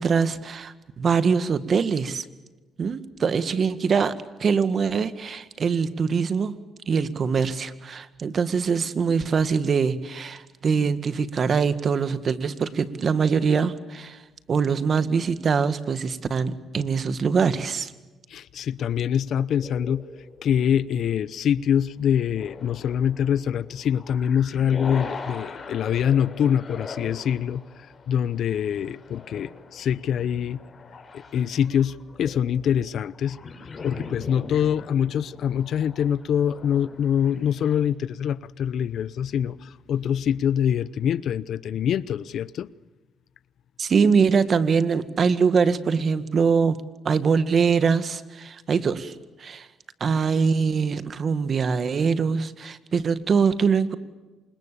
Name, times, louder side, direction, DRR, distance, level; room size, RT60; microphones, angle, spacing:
voice 1, 0.0-2.2 2.8-6.6 6.9-14.2 14.5-17.9 43.8-49.7 50.0-54.0, right 5 dB, 50° right, 1.9 m, -23 dB
voice 2, 18.3-20.0 20.4-27.6 28.1-30.6 31.1-33.4 33.8-42.7, left 9 dB, 70° left, 0.8 m, -24 dB
sound 1, 19.6-21.2 22.1-37.8, left 4 dB, 40° left, 6.5 m, -42 dB
28.5 x 26.0 x 7.0 m
cardioid pair, 90°, 0 cm